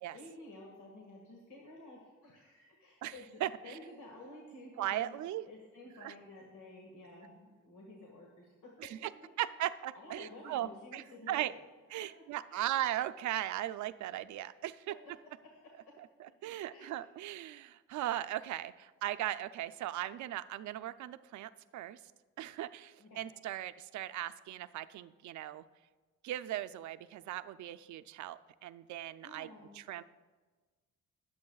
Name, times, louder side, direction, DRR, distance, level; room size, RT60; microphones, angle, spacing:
voice 1, 0.1-5.2 5.4-8.7 9.0-9.1 9.9-11.6 12.5-12.7 15.5-15.8 16.7-17.0 23.0-23.2 29.2-29.7, left 2 dB, 70° left, -1 dB, 1.8 m, -52 dB
voice 2, 3.4-3.8 4.8-5.4 6.0-6.1 8.8-9.1 9.4-11.5 11.9-14.9 16.0-22.0 22.4-25.6 26.2-29.5 29.7-30.0, right 13 dB, 70° right, 13 dB, 0.5 m, -38 dB
20.5 x 8.0 x 2.3 m, 1.3 s
cardioid pair, 90°, 30 cm